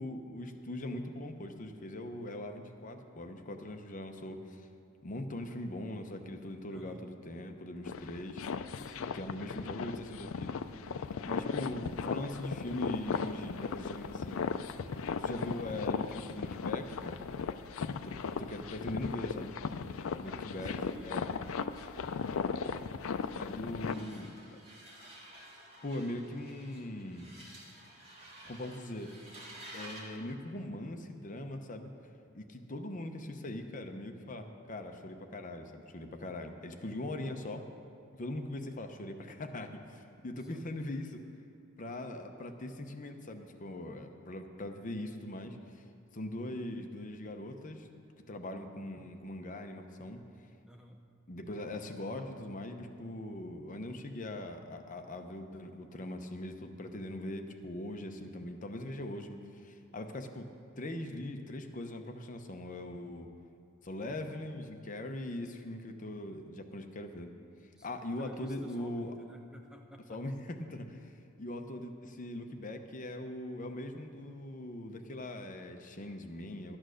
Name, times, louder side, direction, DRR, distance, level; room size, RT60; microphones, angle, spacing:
voice 1, 0.0-4.7 5.0-8.4 9.1-10.6 11.3-14.5 15.2-17.2 18.0-19.5 20.2-21.3 23.4-24.3 25.8-27.3 28.4-29.1 29.7-31.9 32.3-37.7 38.1-41.2 41.8-45.8 46.1-47.9 48.3-50.2 51.3-60.5 60.8-63.3 63.8-67.3 67.8-69.1 70.1-71.1 71.4-76.8, left 1 dB, 35° left, 5 dB, 0.7 m, -41 dB
voice 2, 6.7-7.1 8.8-9.2 20.2-23.2 23.7-24.3 40.4-40.7 46.3-46.6 50.6-51.0 67.7-70.2, right 1 dB, 5° right, 2 dB, 0.5 m, -54 dB
sound 1, 7.8-23.9, left 5 dB, 70° left, 0.4 m, -37 dB
sound 2, 23.8-30.2, right 1 dB, 30° right, 2.0 m, -51 dB
12.5 x 8.8 x 6.4 m, 2.4 s
head